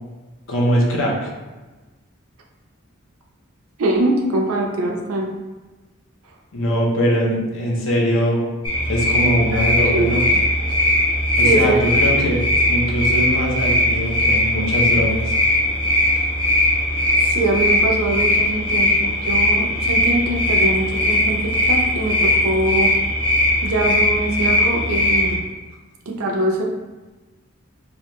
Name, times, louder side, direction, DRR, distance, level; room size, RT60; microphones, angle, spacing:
voice 1, 0.5-1.3 6.5-8.4 8.9-10.2 11.4-12.4 12.7-15.3, equal, 65° left, -3 dB, 0.8 m, -21 dB
voice 2, 3.8-5.3 9.8-10.4 11.4-11.9 17.2-22.9 23.6-25.4 26.1-26.6, right 2 dB, 80° right, 0 dB, 0.6 m, -23 dB
sound 1, 8.6-25.4, left 1 dB, 25° left, 0.7 m, -19 dB
3.9 x 2.4 x 3.1 m, 1.2 s
head